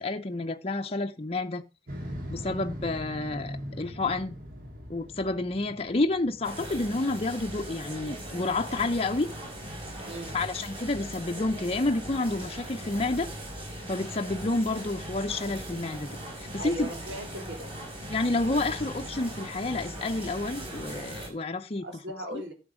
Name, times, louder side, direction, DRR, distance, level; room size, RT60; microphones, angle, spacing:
voice 1, 0.0-1.6 2.3-4.4 4.9-9.3 10.3-13.3 13.9-16.9 18.1-21.9 22.3-22.4, left 2 dB, 35° left, 0.7 m, -29 dB
Motorcycle, 1.9-7.1, equal, 50° right, 3.3 m, -40 dB
sound 1, 6.4-21.3, right 1 dB, 30° right, 5.8 m, -39 dB
voice 2, 16.6-17.7 21.8-22.5, right 1 dB, 80° right, 4.0 m, -39 dB
12.5 x 7.1 x 4.9 m
head